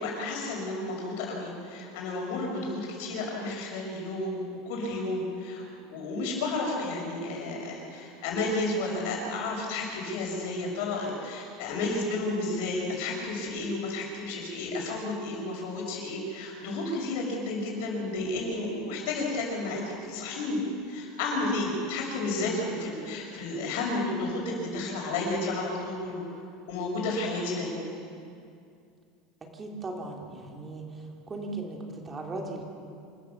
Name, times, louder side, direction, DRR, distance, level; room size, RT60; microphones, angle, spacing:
voice 1, 0.0-20.6 20.9-26.2 26.7-27.8, left 2 dB, 70° left, -1 dB, 7.1 m, -32 dB
voice 2, 29.4-30.9 31.3-32.6, right 2 dB, 20° right, 1 dB, 3.0 m, -37 dB
27.5 x 14.0 x 7.2 m, 2.4 s
supercardioid pair, 145°, 0 cm